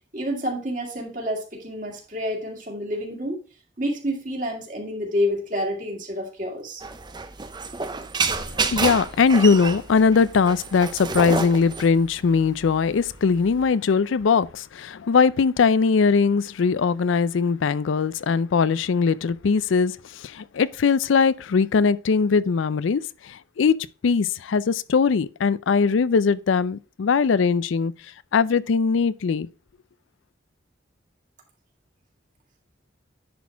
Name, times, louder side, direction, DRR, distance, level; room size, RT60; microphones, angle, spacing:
voice 1, 0.1-3.4 3.8-6.8, equal, 40° right, 2.2 m, -28 dB
sound 1, 6.8-13.7, right 4 dB, 20° right, 0.5 m, -29 dB
voice 2, 8.3-23.8 24.0-27.9 28.3-29.5, left 5 dB, 80° left, 0.4 m, -21 dB
10.5 x 4.2 x 4.5 m
head